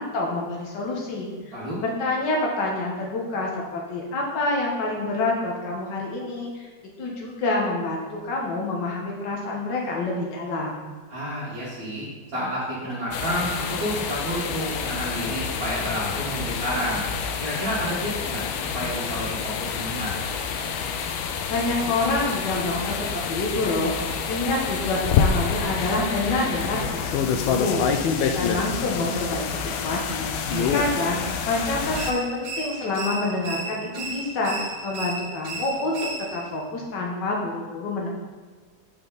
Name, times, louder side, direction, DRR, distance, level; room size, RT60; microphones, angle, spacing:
voice 1, 0.0-6.7 7.0-10.8 21.5-28.0 28.3-30.3 30.7-31.2 31.4-38.1, left 2 dB, 65° left, -1 dB, 1.8 m, -27 dB
voice 2, 11.1-17.0 17.4-20.1 30.5-30.8, equal, 50° right, -8 dB, 2.1 m, -30 dB
sound 1, 13.1-32.1, left 6 dB, 85° left, 1.4 m, -27 dB
sound 2, 31.9-36.6, right 3 dB, 85° right, 1.8 m, -34 dB
7.6 x 5.2 x 4.0 m, 1.4 s
omnidirectional pair, 2.1 m